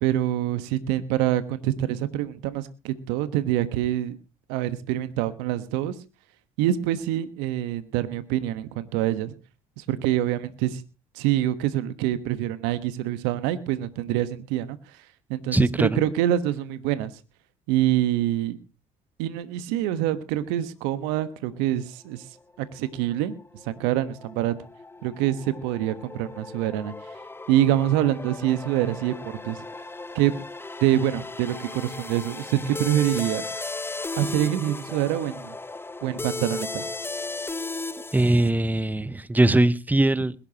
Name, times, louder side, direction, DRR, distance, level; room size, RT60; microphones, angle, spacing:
voice 1, 0.0-4.2 4.5-6.0 6.6-9.3 9.8-10.8 11.1-17.1 17.7-18.6 19.2-22.3 22.6-23.3 23.6-24.5 25.0-26.9 27.5-29.6 30.1-30.3 30.8-33.5 34.2-35.6 36.0-36.8, right 12 dB, 75° right, 1.3 m, -25 dB
voice 2, 15.5-16.0 38.1-40.3, right 1 dB, 10° right, 0.9 m, -21 dB
sound 1, 22.2-38.5, left 3 dB, 15° left, 0.8 m, -36 dB
21.5 x 11.5 x 2.9 m
hypercardioid pair, 65°, 18 cm